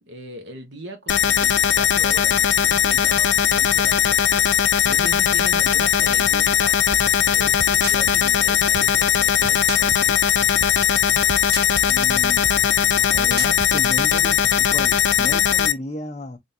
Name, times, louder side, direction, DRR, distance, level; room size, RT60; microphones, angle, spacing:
voice 1, 0.1-6.8 7.2-10.2, right 1 dB, 90° right, 1.1 m, -38 dB
sound 1, 1.1-15.7, left 9 dB, 85° left, 0.5 m, -19 dB
sound 2, 6.9-14.3, right 7 dB, 60° right, 0.4 m, -36 dB
voice 2, 11.8-12.4 12.8-16.4, left 1 dB, 35° left, 0.7 m, -34 dB
3.6 x 3.5 x 2.7 m
head